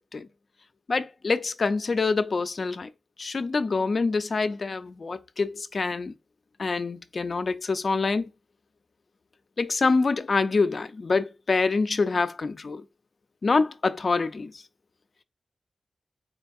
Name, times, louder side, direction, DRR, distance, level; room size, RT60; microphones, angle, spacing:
voice 1, 0.9-2.9 3.2-6.1 6.6-8.2 9.6-12.8 13.4-14.5, left 4 dB, 55° left, 0.4 m, -26 dB
4.3 x 2.5 x 2.3 m
wide cardioid pair, 80°, 0 cm